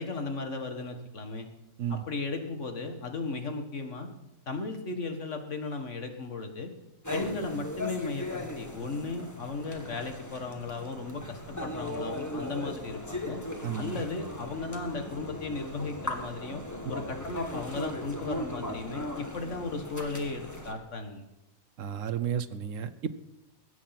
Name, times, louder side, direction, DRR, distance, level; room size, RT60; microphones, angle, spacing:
voice 1, 0.0-1.5 1.9-4.1 4.5-6.7 7.1-13.4 13.7-16.6 16.9-21.2, left 3 dB, 60° left, 6 dB, 1.9 m, -36 dB
sound 1, 7.0-20.7, left 1 dB, 15° left, 1.6 m, -38 dB
voice 2, 13.6-14.0 21.8-23.1, right 8 dB, 70° right, 13 dB, 1.1 m, -32 dB
21.5 x 8.5 x 5.8 m, 0.95 s
omnidirectional pair, 1.4 m